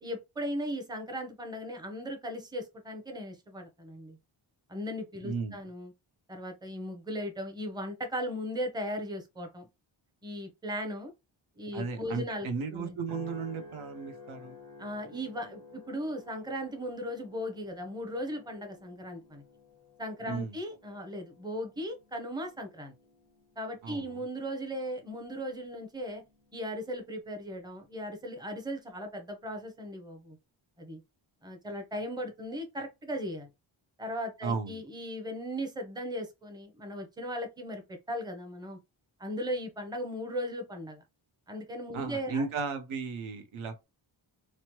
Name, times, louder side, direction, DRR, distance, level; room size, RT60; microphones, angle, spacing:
voice 1, 0.0-4.2 4.7-5.9 6.3-9.7 10.2-11.1 11.6-13.0 14.8-19.4 20.0-22.9 23.6-26.2 26.5-30.4 30.8-31.0 31.4-33.5 34.0-38.8 39.2-41.0 41.5-42.4, equal, 10° right, 0.6 m, -37 dB
voice 2, 5.2-5.5 11.7-14.6 20.2-20.5 23.8-24.2 34.4-34.8 41.9-43.9, right 4 dB, 80° right, 0.7 m, -35 dB
sound 1, 13.1-27.6 28.1-28.5, left 2 dB, 30° right, 1.2 m, -53 dB
3.0 x 2.1 x 3.0 m
wide cardioid pair, 100°, 48 cm